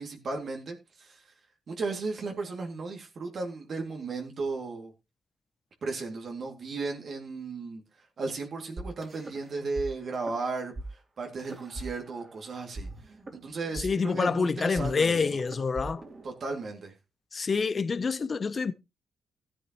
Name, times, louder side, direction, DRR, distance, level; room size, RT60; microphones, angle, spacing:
voice 1, 0.0-1.3 1.7-4.9 5.8-15.2 16.2-16.9, right 3 dB, 60° right, 2.2 m, -35 dB
sound 1, 8.8-9.9 10.1-10.4 10.8-10.9 11.4-12.4 12.8-16.8, right 2 dB, 35° right, 2.7 m, -41 dB
voice 2, 13.7-16.0 17.3-18.7, left 5 dB, 40° left, 0.6 m, -27 dB
14.5 x 9.9 x 2.9 m
cardioid pair, 85°, 0 cm